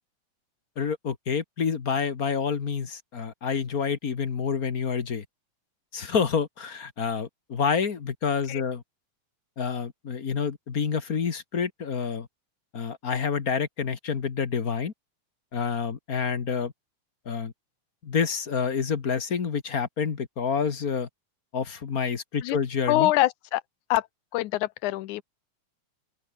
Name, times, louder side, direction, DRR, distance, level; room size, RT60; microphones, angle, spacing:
voice 1, 0.8-5.2 5.9-8.8 9.6-12.3 12.7-14.9 15.5-16.7 17.2-17.5 18.0-21.1 21.5-23.1, left 6 dB, 40° left, 1.5 m, -28 dB
voice 2, 22.9-23.6 23.9-24.1 24.3-25.2, left 16 dB, 90° left, 2.2 m, -24 dB
open air
omnidirectional pair, 3.4 m